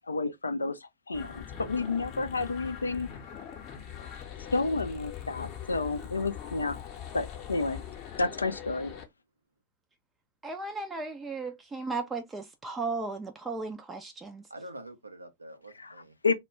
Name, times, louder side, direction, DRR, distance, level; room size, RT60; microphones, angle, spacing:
voice 1, 0.1-0.8 1.1-3.1 4.5-6.8 7.1-7.8 8.2-8.9 15.8-15.9 16.2-16.3, left 3 dB, 75° left, 0.4 m, -30 dB
sound 1, 1.1-9.0, left 9 dB, 40° left, 0.7 m, -42 dB
voice 2, 8.5-9.1 14.5-16.2, right 1 dB, 80° right, 0.5 m, -47 dB
voice 3, 10.4-14.4, right 3 dB, 15° right, 0.4 m, -35 dB
2.2 x 2.2 x 2.9 m
figure-of-eight pair, 90°, 0 cm